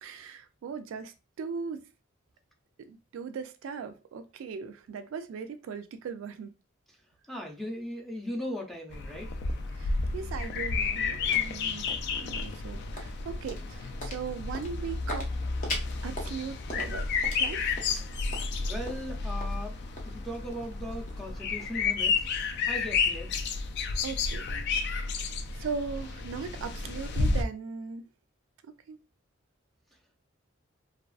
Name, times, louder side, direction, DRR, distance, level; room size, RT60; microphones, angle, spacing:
voice 1, 0.0-1.8 2.8-6.5 9.7-15.3 16.0-17.1 17.4-17.6 24.0-24.5 24.8-25.0 25.5-28.1 28.6-29.0, right 6 dB, 75° right, 0.3 m, -39 dB
voice 2, 7.3-9.3 18.6-19.8 20.0-22.3 22.7-23.4, equal, ahead, 0.5 m, -38 dB
sound 1, 8.9-27.4, left 4 dB, 55° left, 0.3 m, -31 dB
sound 2, 10.6-22.7, left 1 dB, 40° left, 0.7 m, -44 dB
2.4 x 2.3 x 2.3 m
head